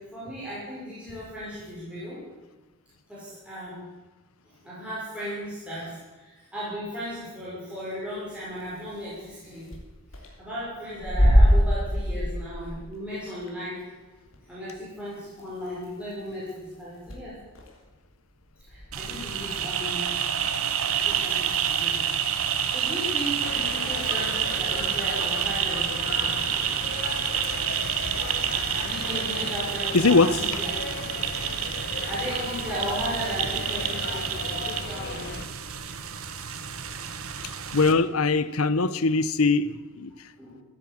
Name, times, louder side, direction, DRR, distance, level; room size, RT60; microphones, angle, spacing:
voice 1, 0.0-2.3 3.1-3.9 4.4-9.7 10.1-13.8 14.4-17.4 18.7-20.1 20.9-22.0 22.4-26.8 28.8-30.7 32.1-35.4 40.4-40.6, equal, 5° right, -10 dB, 6.0 m, -36 dB
sound 1, 8.9-9.0 9.3-9.4 9.7-9.8 10.1-10.3 10.9-12.8 13.4-13.5 14.3-14.4 15.4-15.5 15.7-15.9 16.3-16.5 17.1-17.2 17.5-17.8 18.6-19.6, equal, 70° left, 3.3 m, -22 dB
sound 2, 18.9-37.9, right 8 dB, 85° right, 1.3 m, -29 dB
sound 3, 23.4-35.4, left 4 dB, 50° left, 1.1 m, -36 dB
voice 2, 29.9-30.3 37.7-40.1, left 3 dB, 90° left, 15 dB, 0.9 m, -21 dB
15.5 x 10.0 x 8.6 m, 1.2 s
head